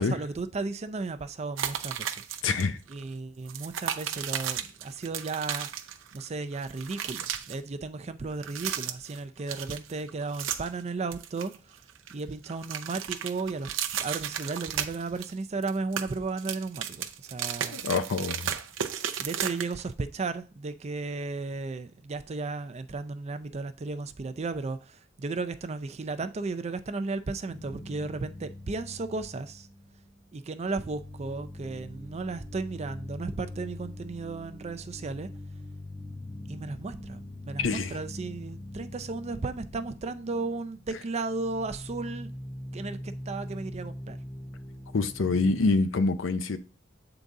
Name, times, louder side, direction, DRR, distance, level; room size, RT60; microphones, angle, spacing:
voice 1, 0.0-2.2 2.9-5.7 6.1-11.5 12.1-13.7 14.0-17.8 19.2-29.7 30.3-35.3 36.5-42.3 42.7-44.2, right 3 dB, 35° right, 0.4 m, -34 dB
sound 1, 1.6-2.6 2.9-3.0 3.5-6.3 6.5-7.6 8.3-9.2 9.5-10.8 11.1-12.1 12.4-15.3 15.6-19.9, right 9 dB, 85° right, 0.6 m, -34 dB
voice 2, 2.4-2.8 17.7-18.5 37.6-38.0 44.9-46.6, left 3 dB, 85° left, 0.6 m, -26 dB
sound 2, 27.5-30.3 30.6-45.7, left 1 dB, 15° left, 0.6 m, -43 dB
8.0 x 4.0 x 3.6 m
head